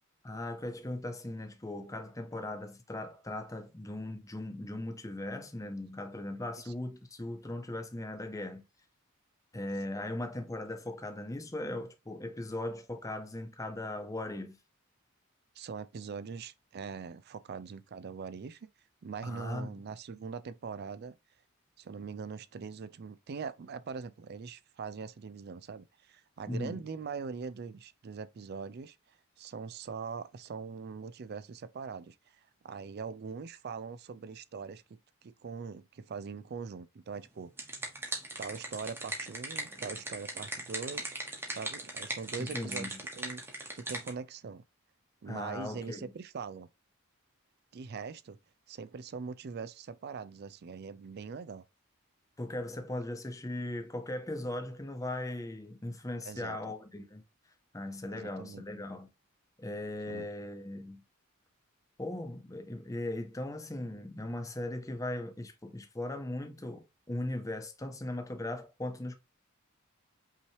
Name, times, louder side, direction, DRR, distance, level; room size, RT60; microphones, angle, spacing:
voice 1, 0.2-8.6 9.5-14.6 19.2-19.8 26.5-26.8 42.4-43.0 45.3-46.1 52.4-57.2 57.7-59.1 59.6-61.0 62.0-69.1, left 1 dB, 15° left, 0.6 m, -38 dB
voice 2, 15.6-18.7 19.0-21.2 21.8-29.0 29.4-32.2 32.6-37.7 38.4-41.1 41.5-44.6 45.2-46.7 47.7-48.4 48.7-51.6 56.2-56.6 58.1-58.6 60.1-60.3, right 5 dB, 50° right, 0.4 m, -42 dB
sound 1, 37.3-44.1, right 2 dB, 10° right, 1.1 m, -39 dB
5.6 x 3.1 x 2.8 m
head